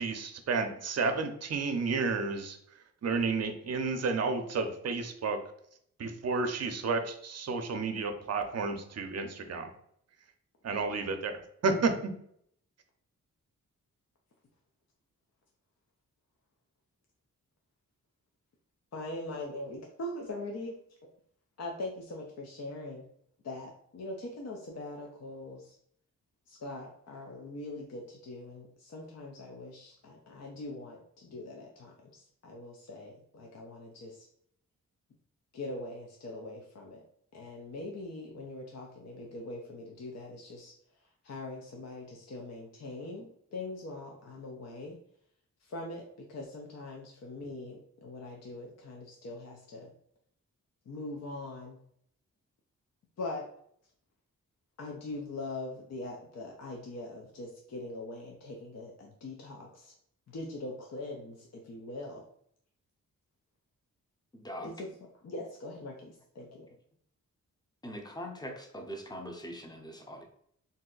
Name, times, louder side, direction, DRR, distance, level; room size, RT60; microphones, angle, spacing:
voice 1, 0.0-2.6 3.0-5.4 6.0-9.7 10.6-12.1, right 4 dB, 50° right, 7 dB, 0.6 m, -31 dB
voice 2, 18.9-20.8 21.6-23.1 23.4-25.8 26.5-34.3 35.5-37.0 37.3-40.7 41.0-45.0 45.6-49.9 50.9-51.8 53.2-53.5 54.8-59.9 60.3-62.2 64.6-65.0 65.2-66.7, left 2 dB, 50° left, 0 dB, 0.6 m, -42 dB
voice 3, 64.3-64.7 67.8-70.2, equal, 10° left, 2 dB, 0.7 m, -42 dB
2.7 x 2.2 x 3.8 m, 0.68 s
cardioid pair, 55°, 33 cm